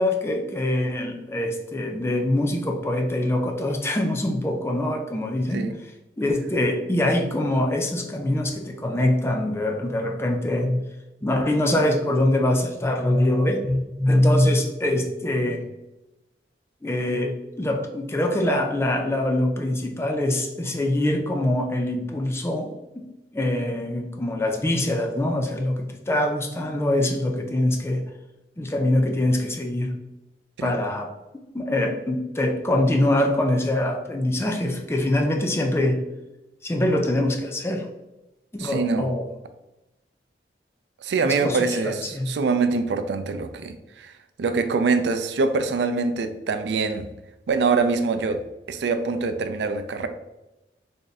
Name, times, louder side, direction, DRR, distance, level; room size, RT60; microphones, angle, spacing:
voice 1, 0.0-5.7 6.2-10.8 11.2-15.6 16.8-23.0 23.3-28.0 28.6-29.9 30.6-31.1 31.5-36.0 36.6-37.9 38.5-39.3 41.2-42.3, left 1 dB, 15° left, 3 dB, 0.4 m, -24 dB
voice 2, 38.6-39.1 41.0-44.1 44.4-47.1 47.5-48.4 48.7-50.1, right 4 dB, 75° right, 9 dB, 0.4 m, -24 dB
3.4 x 2.5 x 4.0 m, 0.97 s
head